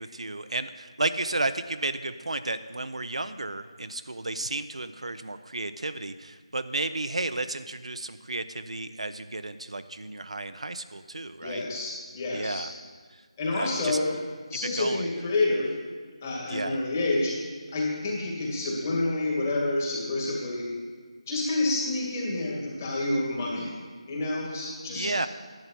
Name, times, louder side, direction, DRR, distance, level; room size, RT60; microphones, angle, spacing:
voice 1, 0.0-11.6 12.3-12.7 13.1-13.2 13.5-14.0 14.6-15.1 16.5-16.8 24.9-25.3, right 2 dB, 80° right, 11 dB, 0.5 m, -33 dB
voice 2, 11.4-12.7 13.4-14.1 14.5-15.7 16.2-17.4 17.7-20.7 21.3-23.7 24.1-25.1, left 2 dB, 30° left, -3 dB, 2.2 m, -28 dB
10.5 x 7.7 x 4.4 m, 1.5 s
figure-of-eight pair, 165°, 3 cm